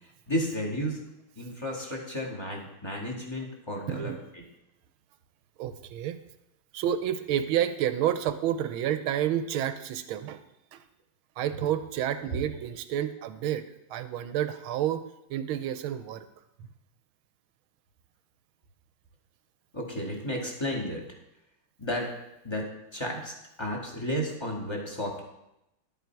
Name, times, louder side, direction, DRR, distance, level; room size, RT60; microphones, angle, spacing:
voice 1, 0.3-1.0 1.4-4.4 12.3-12.4 19.7-21.0 21.8-22.1 22.4-23.3 23.6-25.2, equal, 15° left, -1 dB, 1.8 m, -32 dB
voice 2, 3.9-4.2 5.6-6.2 6.7-10.4 10.7-10.8 11.4-15.0 15.3-16.3, right 10 dB, 75° right, 11 dB, 1.5 m, -30 dB
12.0 x 8.1 x 4.7 m, 0.86 s
omnidirectional pair, 2.3 m